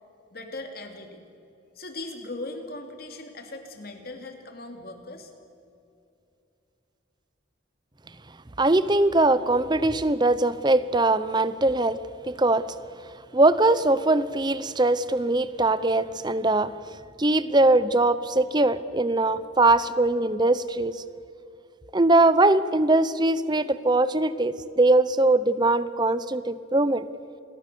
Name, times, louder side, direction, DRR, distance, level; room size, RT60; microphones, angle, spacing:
voice 1, 0.3-1.2 1.7-5.3, left 2 dB, 50° left, 5 dB, 2.9 m, -39 dB
voice 2, 8.6-12.0 12.2-12.6 13.3-16.7 17.2-21.0 21.9-27.1, right 2 dB, 20° right, 15 dB, 0.7 m, -21 dB
28.5 x 21.5 x 6.9 m, 2.7 s
head